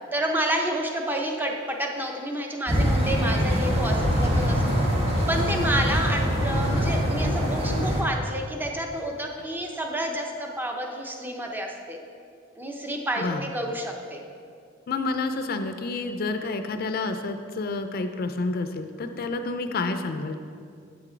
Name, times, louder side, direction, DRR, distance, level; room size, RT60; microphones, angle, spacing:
voice 1, 0.1-4.7 5.3-12.0 12.6-14.2, right 1 dB, 10° right, 2 dB, 0.7 m, -29 dB
sound 1, 2.7-8.0, equal, 30° right, 1.4 m, -23 dB
voice 2, 13.2-13.5 14.9-20.4, left 3 dB, 50° left, 8 dB, 0.4 m, -29 dB
8.4 x 6.0 x 4.4 m, 2.3 s
head